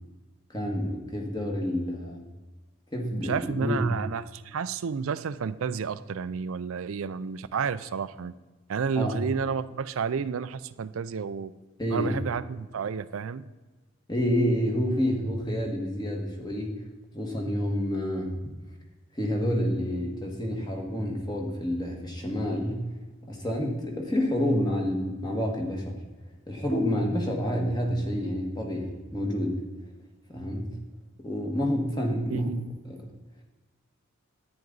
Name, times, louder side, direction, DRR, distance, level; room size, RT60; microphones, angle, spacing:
voice 1, 0.5-2.2 2.9-3.9 8.9-9.2 11.8-12.1 14.1-16.8 17.1-18.4 19.1-22.9 23.3-26.0 26.5-29.6 30.3-30.8 31.2-32.5 32.8-33.0, equal, 20° left, 1 dB, 1.6 m, -28 dB
voice 2, 3.2-8.3 8.7-11.5 11.9-13.4 32.3-32.7, right 6 dB, 80° right, 14 dB, 0.4 m, -31 dB
10.5 x 9.3 x 3.9 m, 1.2 s
head